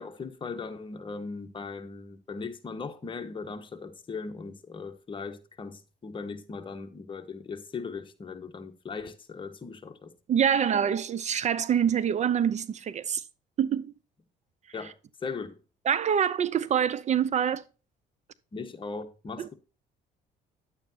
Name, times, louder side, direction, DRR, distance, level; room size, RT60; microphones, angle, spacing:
voice 1, 0.0-10.1 14.7-14.9 15.2-15.6 18.5-19.5, left 4 dB, 30° left, 1.3 m, -38 dB
voice 2, 10.3-13.2 13.6-13.9 15.9-17.6 19.4-19.5, right 8 dB, 45° right, 0.6 m, -25 dB
10.5 x 8.6 x 2.8 m
cardioid pair, 110°, 17 cm